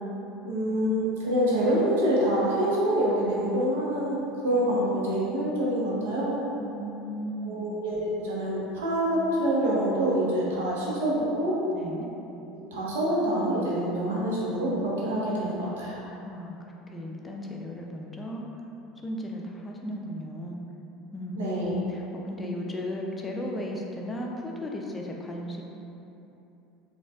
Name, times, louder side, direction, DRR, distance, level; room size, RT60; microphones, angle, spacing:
voice 1, 0.4-6.4 7.4-11.5 12.7-16.0 21.4-21.7, right 1 dB, 85° right, -6 dB, 0.7 m, -26 dB
voice 2, 6.6-7.7 11.7-12.1 16.2-18.4 19.0-20.6 21.1-25.6, left 1 dB, 20° left, -1 dB, 0.4 m, -35 dB
4.0 x 2.3 x 2.3 m, 2.9 s
hypercardioid pair, 85°, 0 cm